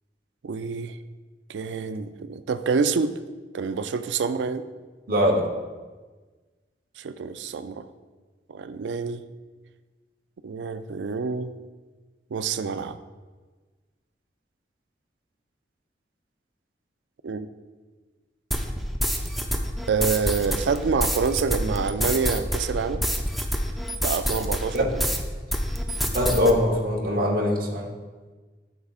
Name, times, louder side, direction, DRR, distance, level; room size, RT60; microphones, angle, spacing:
voice 1, 0.4-1.0 1.5-3.1 3.5-4.7 7.0-7.9 8.5-9.2 10.4-11.5 12.3-13.0 17.2-17.5 19.9-23.0 24.0-24.9, right 5 dB, 85° right, 11 dB, 0.4 m, -27 dB
voice 2, 5.1-5.5 24.7-24.9 26.1-27.8, left 1 dB, 55° right, -1 dB, 1.1 m, -22 dB
sound 1, 18.5-25.2 25.5-26.5, equal, ahead, 0.5 m, -27 dB
9.9 x 6.8 x 2.4 m, 1.3 s
head